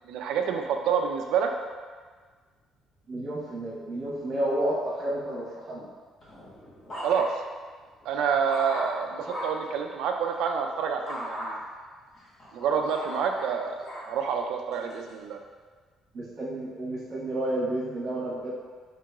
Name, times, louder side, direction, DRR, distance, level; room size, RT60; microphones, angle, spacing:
voice 1, 0.1-1.5 7.0-7.3 8.1-11.6 12.5-13.8 14.1-15.4, right 7 dB, 75° right, 4 dB, 0.3 m, -28 dB
voice 2, 3.1-5.8 16.1-18.5, right 1 dB, 50° right, -7 dB, 1.2 m, -31 dB
sound 1, 6.2-7.6 8.0-9.7 11.1-11.5 12.1-14.1 14.7-15.1, equal, 35° left, 1.1 m, -37 dB
4.5 x 3.0 x 2.3 m, 1.5 s
cardioid pair, 175°, 0 cm